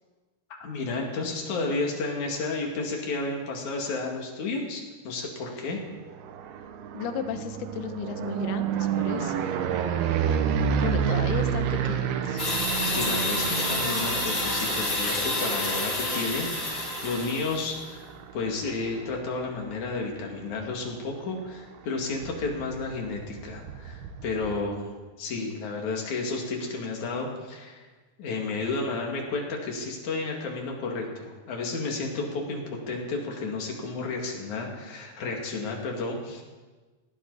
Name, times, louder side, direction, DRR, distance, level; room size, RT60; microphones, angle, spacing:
voice 1, 0.6-5.8 12.8-18.0 18.3-24.9 25.2-27.8 28.2-36.4, left 3 dB, 55° left, 0 dB, 3.4 m, -32 dB
sound 1, 6.0-20.0 20.4-20.9 21.1-21.2 21.5-21.6 21.8-24.6, right 8 dB, 90° right, 3.0 m, -30 dB
voice 2, 6.9-9.4 10.8-12.6, left 7 dB, 85° left, 9 dB, 2.9 m, -35 dB
sound 2, 12.4-17.8, left 2 dB, 25° left, 2.5 m, -29 dB
19.5 x 15.0 x 4.1 m, 1.3 s
omnidirectional pair, 4.4 m